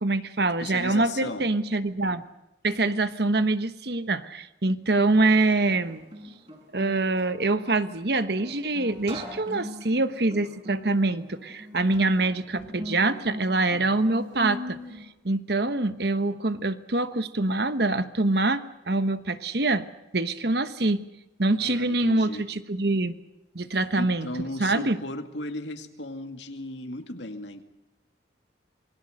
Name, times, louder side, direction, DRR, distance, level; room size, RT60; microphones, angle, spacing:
voice 1, 0.0-2.2 2.6-6.0 6.7-14.8 15.2-19.8 20.1-21.0 21.4-23.2 23.5-24.3 24.6-25.0, right 2 dB, 60° right, 11 dB, 1.2 m, -25 dB
voice 2, 0.6-1.5 21.6-22.5 24.0-27.6, left 1 dB, 75° left, 6 dB, 2.2 m, -36 dB
Guitar, 5.6-15.0, equal, 30° right, 5.8 m, -40 dB
27.5 x 21.5 x 6.5 m, 0.93 s
head